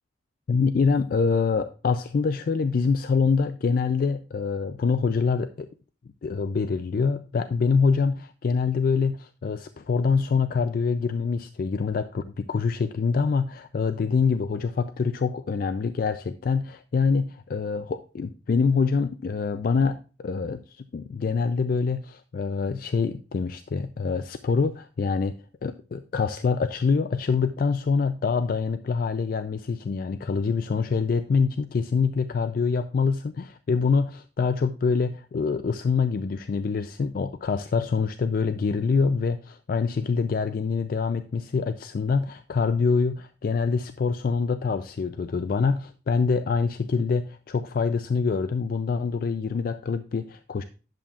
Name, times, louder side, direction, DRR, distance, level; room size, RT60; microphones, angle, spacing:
voice 1, 0.5-5.7 6.2-25.3 25.6-50.6, left 5 dB, 50° left, 11 dB, 0.3 m, -25 dB
10.5 x 7.2 x 2.4 m, 0.36 s
head